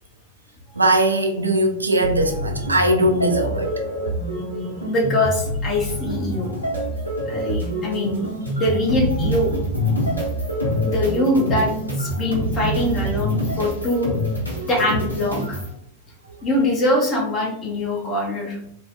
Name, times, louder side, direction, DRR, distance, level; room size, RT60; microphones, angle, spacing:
voice 1, 0.8-3.9, right 1 dB, 80° right, 0.3 m, -20 dB
sound 1, 2.0-15.7, equal, 85° left, 0.7 m, -26 dB
voice 2, 4.9-6.5 7.3-8.3 8.6-9.6 10.8-14.1 14.7-15.6 16.4-18.6, left 1 dB, 30° left, 0.7 m, -23 dB
2.7 x 2.0 x 2.4 m
figure-of-eight pair, 90°, 0 cm